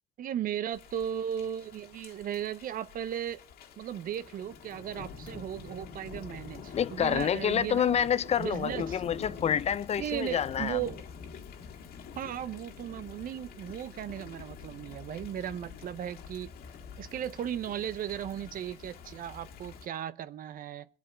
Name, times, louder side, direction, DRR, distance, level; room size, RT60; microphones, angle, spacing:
voice 1, 0.2-3.4 3.8-8.0 8.4-9.0 10.0-11.0 12.2-16.5 17.0-20.9, right 10 dB, 55° right, 0.7 m, -36 dB
Thunder / Rain, 0.7-19.9, left 6 dB, 65° left, 1.8 m, -46 dB
voice 2, 6.7-10.8, left 8 dB, 40° left, 0.5 m, -28 dB
21.5 x 8.4 x 4.4 m
cardioid pair, 110°, 17 cm